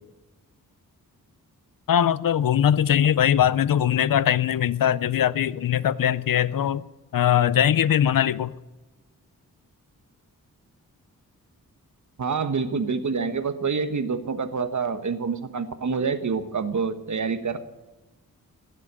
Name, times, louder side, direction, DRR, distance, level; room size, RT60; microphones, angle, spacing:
voice 1, 1.9-6.8 7.1-8.5, left 10 dB, 75° left, 0.6 m, -21 dB
voice 2, 12.2-17.6, right 5 dB, 55° right, 1.3 m, -27 dB
16.0 x 7.5 x 8.9 m
cardioid pair, 75°, 34 cm